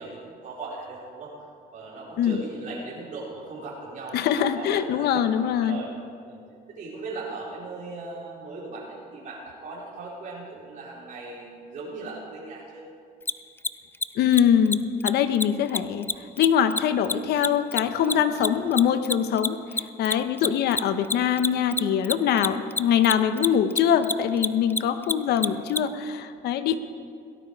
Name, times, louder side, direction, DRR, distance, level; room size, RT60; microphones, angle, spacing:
voice 1, 0.0-1.3 1.7-5.3 5.6-5.9 6.2-6.4 6.7-12.9 17.8-18.1 18.4-18.7 25.3-25.4, right 3 dB, 50° right, -7 dB, 4.2 m, -38 dB
voice 2, 4.1-5.8 14.2-16.1 16.4-26.8, left 8 dB, 75° left, 10 dB, 0.9 m, -23 dB
Mechanisms, 13.2-13.3 13.6-13.7 13.9-14.1 14.3-14.4 14.7-14.8 15.0-15.1 15.3-15.4 15.7-18.5 18.7-25.8, left 3 dB, 15° left, 0.4 m, -26 dB
17.5 x 12.0 x 4.7 m, 2.3 s
cardioid pair, 110°, 17 cm